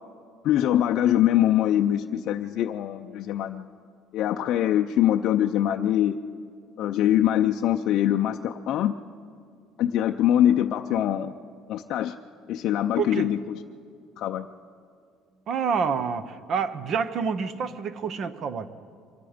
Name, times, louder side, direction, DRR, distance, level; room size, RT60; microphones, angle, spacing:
voice 1, 0.4-3.7 4.1-6.2 6.8-8.9 9.8-11.3 11.7-12.2 12.5-13.6 14.2-14.5, left 11 dB, 50° left, 4 dB, 0.5 m, -23 dB
voice 2, 13.0-13.3 15.5-18.8, right 6 dB, 40° right, 13 dB, 0.8 m, -28 dB
24.5 x 20.5 x 5.1 m, 2.2 s
cardioid pair, 165°, 0 cm